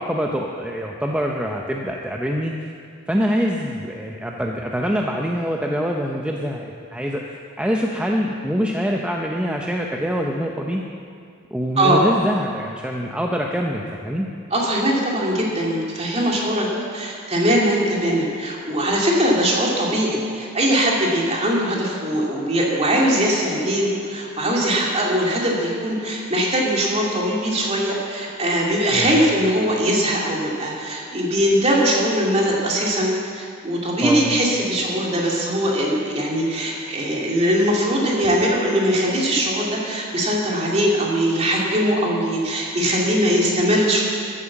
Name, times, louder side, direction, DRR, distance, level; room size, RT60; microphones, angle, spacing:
voice 1, 0.0-2.6 3.1-7.2 7.6-10.8 11.5-14.3 28.9-29.1 34.0-34.2, equal, 5° right, 0 dB, 0.6 m, -24 dB
voice 2, 14.5-16.7 16.9-44.0, equal, 30° right, -3 dB, 2.5 m, -21 dB
14.0 x 8.6 x 7.2 m, 2.3 s
head